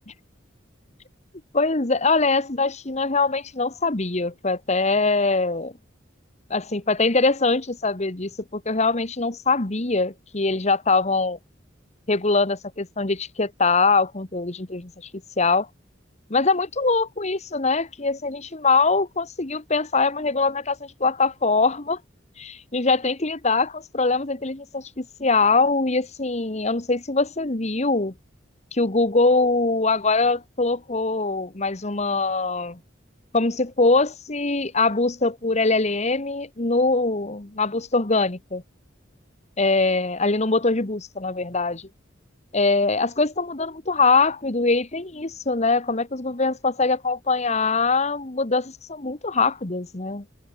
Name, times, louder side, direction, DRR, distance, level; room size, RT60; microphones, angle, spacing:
voice 1, 1.5-5.7 6.5-11.4 12.1-14.9 15.4-15.7 16.3-22.0 22.4-28.1 28.7-32.8 33.3-38.6 39.6-41.9 42.5-50.2, left 3 dB, 35° left, 1.4 m, -23 dB
head